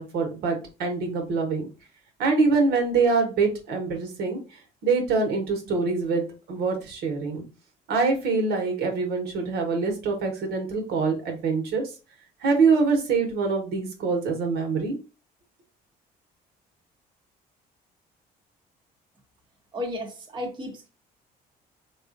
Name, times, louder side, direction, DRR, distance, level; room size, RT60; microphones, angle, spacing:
voice 1, 0.0-1.7 2.2-7.4 7.9-11.9 12.4-14.9, right 4 dB, 70° right, 1.2 m, -25 dB
voice 2, 19.7-20.9, left 1 dB, 25° right, 0.9 m, -33 dB
3.7 x 2.4 x 2.5 m
cardioid pair, 110°, 17 cm